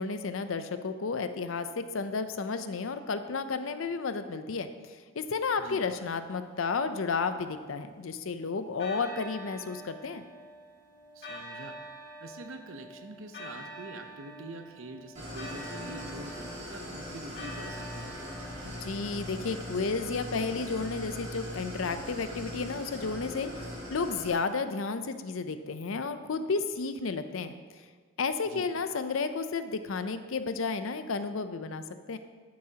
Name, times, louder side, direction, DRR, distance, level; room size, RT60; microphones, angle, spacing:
voice 1, 0.0-4.7 5.1-10.2 18.6-27.5 28.2-32.2, left 4 dB, 85° left, 10 dB, 0.6 m, -32 dB
sound 1, 6.8-8.2 8.8-19.3, equal, 55° left, 2.1 m, -46 dB
voice 2, 11.1-11.8 12.2-18.2 28.4-28.7, right 2 dB, 85° right, 7 dB, 0.8 m, -45 dB
Idling, 15.1-24.3, left 1 dB, 35° right, 2.7 m, -40 dB
11.5 x 8.6 x 2.9 m, 1.5 s
head